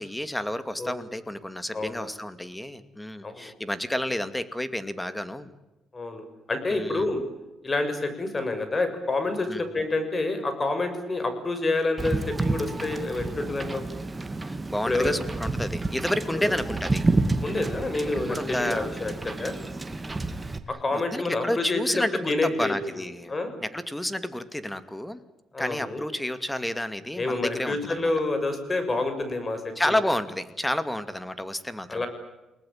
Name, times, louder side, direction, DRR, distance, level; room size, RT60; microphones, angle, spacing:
voice 1, 0.0-5.5 6.7-7.1 9.5-9.6 14.5-17.1 18.1-18.9 20.9-23.3 23.6-25.2 25.6-28.1 29.8-32.0, left 1 dB, 10° left, 12 dB, 2.4 m, -30 dB
voice 2, 5.9-7.2 7.6-13.8 14.9-15.1 16.3-16.5 17.4-19.5 20.7-23.0 23.3-23.5 25.5-26.0 27.2-30.0 31.9-32.1, left 2 dB, 30° left, 9 dB, 6.6 m, -28 dB
Wind / Boat Water vehicle, 12.0-20.6, right 2 dB, 20° right, 2.2 m, -30 dB
29.0 x 19.5 x 9.1 m, 1.0 s
cardioid pair, 90°, 0 cm